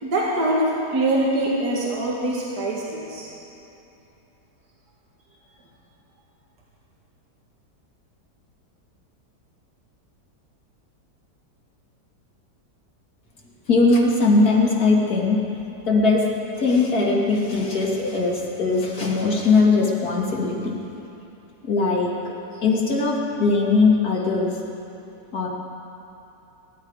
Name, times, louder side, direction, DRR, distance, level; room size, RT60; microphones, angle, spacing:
voice 1, 0.0-3.3, right 1 dB, 70° right, -4 dB, 2.4 m, -23 dB
voice 2, 13.7-15.4 15.9-16.2 16.6-20.8 21.6-22.1 22.6-24.5 25.3-25.5, left 3 dB, 60° left, -2 dB, 2.5 m, -20 dB
22.5 x 11.5 x 4.8 m, 2.9 s
omnidirectional pair, 1.8 m